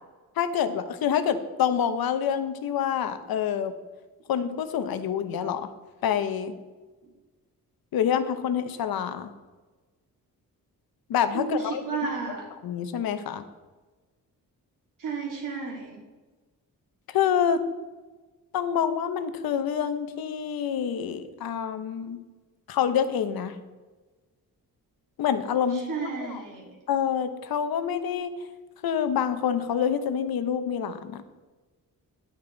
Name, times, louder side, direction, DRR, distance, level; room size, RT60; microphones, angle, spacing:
voice 1, 0.4-3.7 4.3-5.7 6.0-6.5 7.9-9.3 11.1-11.8 12.6-13.4 17.1-17.6 18.5-22.2 22.7-23.6 25.2-26.4 26.9-28.3 28.8-31.2, left 8 dB, 90° left, 10 dB, 1.0 m, -27 dB
voice 2, 11.3-12.4 15.0-16.0 25.7-26.7, right 5 dB, 65° right, 0 dB, 2.9 m, -32 dB
10.5 x 9.1 x 3.9 m, 1.2 s
wide cardioid pair, 140°, 35 cm